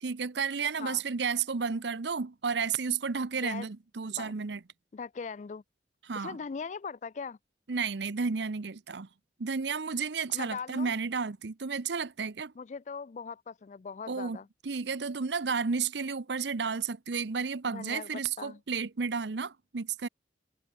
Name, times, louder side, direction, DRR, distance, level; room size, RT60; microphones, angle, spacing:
voice 1, 0.0-4.6 6.1-6.4 7.7-9.1 9.4-12.5 14.1-14.4 14.6-20.1, right 5 dB, 75° right, 0.7 m, -32 dB
voice 2, 4.9-5.6 6.1-7.4 10.3-10.9 12.6-14.5 17.7-18.6, left 5 dB, 40° left, 0.4 m, -40 dB
head